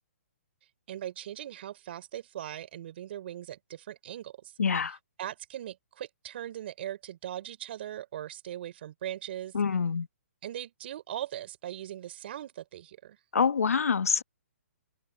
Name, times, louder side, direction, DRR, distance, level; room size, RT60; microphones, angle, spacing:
voice 1, 0.9-4.5 4.8-9.6 10.4-13.2, right 12 dB, 45° right, 5.3 m, -40 dB
voice 2, 4.6-5.0 9.5-10.1 13.3-14.2, left 6 dB, 90° left, 1.3 m, -26 dB
open air
hypercardioid pair, 155°, 8 cm